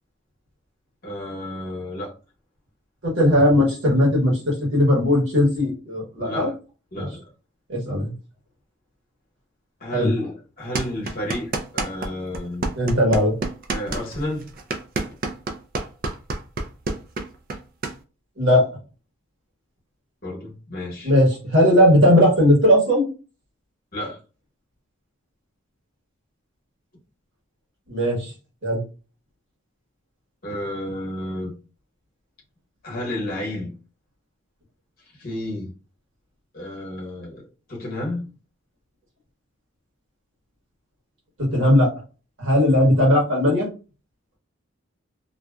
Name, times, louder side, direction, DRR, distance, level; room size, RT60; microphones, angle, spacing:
voice 1, 1.0-2.1 6.2-6.5 6.9-7.2 9.8-12.7 13.7-14.5 20.2-21.1 23.9-24.2 30.4-31.5 32.8-33.7 35.2-35.7 36.5-38.3, left 1 dB, 45° left, 0.9 m, -31 dB
voice 2, 3.0-6.5 6.9-7.1 7.7-8.1 9.9-10.1 12.8-13.3 18.4-18.7 21.0-23.0 27.9-28.3 28.6-28.8 41.4-41.9 42.4-43.7, equal, 60° right, 1.3 m, -18 dB
sound 1, 10.7-12.1 12.3-17.9, right 3 dB, 40° right, 0.3 m, -28 dB
2.5 x 2.1 x 2.3 m
head